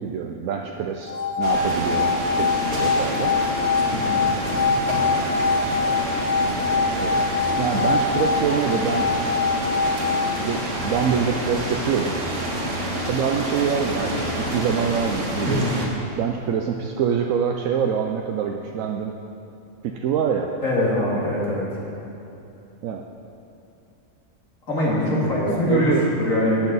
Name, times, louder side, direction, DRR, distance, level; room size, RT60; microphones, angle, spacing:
voice 1, 0.0-3.3 6.9-9.1 10.4-12.2 13.1-15.7 16.0-19.1 19.8-20.5 22.8-23.1 25.5-26.1, right 7 dB, 80° right, 2 dB, 1.0 m, -25 dB
sound 1, 1.0-11.2, left 4 dB, 40° left, 0.8 m, -24 dB
sound 2, 1.4-15.9, right 1 dB, 65° right, 1.9 m, -28 dB
voice 2, 3.9-4.2 15.5-15.7 20.6-22.0 24.7-26.7, left 1 dB, 80° left, -6 dB, 2.9 m, -23 dB
14.5 x 8.8 x 4.0 m, 2.7 s
omnidirectional pair, 1.4 m